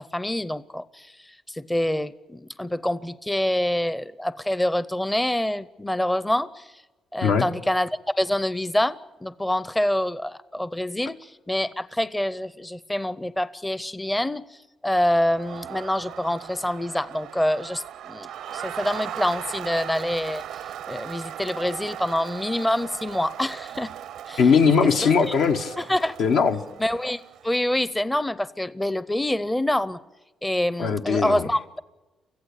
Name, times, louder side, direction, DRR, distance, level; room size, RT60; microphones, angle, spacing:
voice 1, 0.0-6.7 7.1-7.9 8.2-14.6 14.8-20.4 20.9-23.9 24.3-24.4 24.8-25.4 25.8-26.1 26.8-30.0 30.4-31.8, left 1 dB, 10° left, 16 dB, 0.6 m, -26 dB
Crowd, 15.1-27.7, right 10 dB, 80° right, 0.6 m, -38 dB
voice 2, 24.4-25.7 26.2-26.6 30.8-31.5, left 5 dB, 75° left, 5 dB, 1.3 m, -20 dB
24.0 x 15.0 x 8.5 m, 1.2 s
cardioid pair, 90°, 0 cm